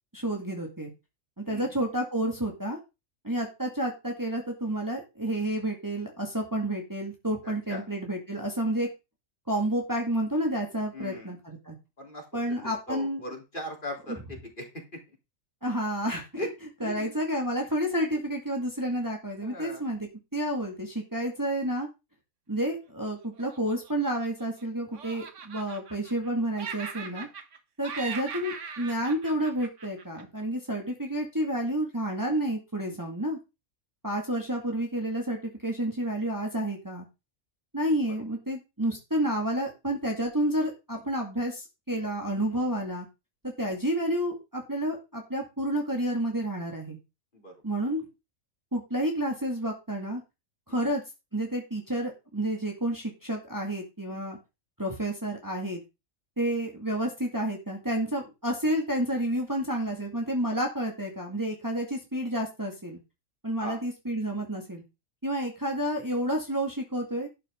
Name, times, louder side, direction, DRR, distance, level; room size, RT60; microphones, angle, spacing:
voice 1, 0.1-0.9 1.4-2.8 3.2-8.9 9.5-11.8 12.3-13.2 14.1-14.2 15.6-16.3 16.8-21.9 22.5-27.3 27.8-33.4 34.0-37.1 37.7-43.1 43.6-47.0 47.6-48.0 48.7-50.2 50.7-51.0 51.3-54.4 54.8-55.8 56.4-63.0 63.4-64.8 65.2-67.3, right 1 dB, 15° right, 1 dB, 2.3 m, -30 dB
voice 2, 7.4-7.8 10.9-11.3 12.0-15.0 16.4-16.5 16.8-17.1 17.8-17.9 19.4-19.8 27.0-27.3 42.5-42.7 47.3-47.5 50.7-50.9 54.1-54.4 63.6-63.8, left 1 dB, 40° left, 1 dB, 3.8 m, -40 dB
Laughter, 23.4-24.6 24.9-26.3 26.6-27.6 27.8-30.4, right 6 dB, 65° right, 1.6 m, -40 dB
11.5 x 8.9 x 3.8 m, 0.26 s
omnidirectional pair, 1.4 m